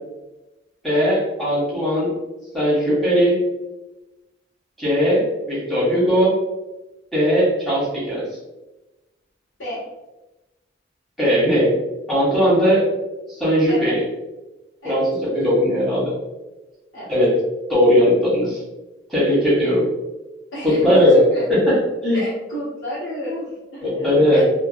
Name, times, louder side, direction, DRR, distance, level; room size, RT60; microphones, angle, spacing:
voice 1, 0.8-2.1 2.5-3.4 4.8-6.4 7.1-8.2 11.2-11.7 12.1-12.9 13.4-14.0 14.8-16.1 17.1-17.4 17.7-18.6 19.1-19.9 20.6-21.8 22.0-22.2 23.8-24.4, equal, ahead, -9 dB, 1.0 m, -18 dB
voice 2, 20.5-21.6 22.1-24.4, equal, 90° left, -10 dB, 0.8 m, -31 dB
2.6 x 2.1 x 2.5 m, 1.0 s
head